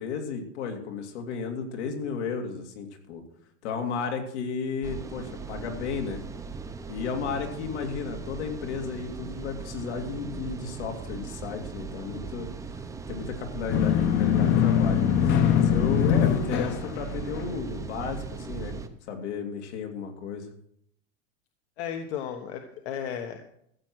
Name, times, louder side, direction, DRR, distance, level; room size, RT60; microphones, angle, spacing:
voice 1, 0.0-3.2 3.6-6.2 6.9-12.5 12.8-15.0 15.5-18.7 19.1-20.5, left 5 dB, 85° left, 3 dB, 2.7 m, -33 dB
sound 1, 4.8-18.9, right 5 dB, 10° right, 0.6 m, -38 dB
sound 2, 13.7-17.6, left 8 dB, 35° left, 0.8 m, -23 dB
voice 2, 21.8-23.4, left 8 dB, 70° left, 5 dB, 1.3 m, -34 dB
14.5 x 7.6 x 6.3 m, 0.73 s
supercardioid pair, 160°, 33 cm